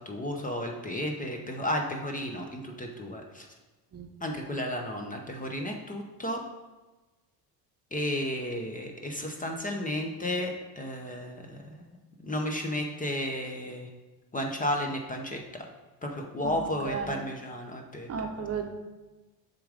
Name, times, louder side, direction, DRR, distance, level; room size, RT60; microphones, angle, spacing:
voice 1, 0.0-3.5 4.2-6.4 7.9-11.8 12.2-13.9 14.3-15.6 16.0-18.1, left 1 dB, 20° left, 2 dB, 0.7 m, -33 dB
voice 2, 16.4-17.1 18.1-18.7, right 6 dB, 35° right, 3 dB, 0.8 m, -34 dB
6.8 x 3.8 x 4.9 m, 1.2 s
supercardioid pair, 105°, 45 cm